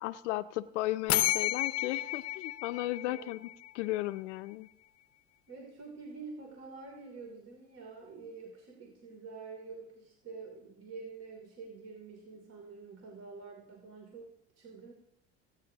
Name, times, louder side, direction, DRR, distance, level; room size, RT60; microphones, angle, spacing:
voice 1, 0.0-3.5 3.7-4.7, left 16 dB, 85° left, 13 dB, 0.7 m, -35 dB
sound 1, 1.1-3.8, left 14 dB, 45° left, 0.7 m, -32 dB
voice 2, 5.5-14.9, right 4 dB, 45° right, -1 dB, 3.1 m, -47 dB
26.0 x 9.8 x 2.9 m, 0.84 s
supercardioid pair, 85°, 34 cm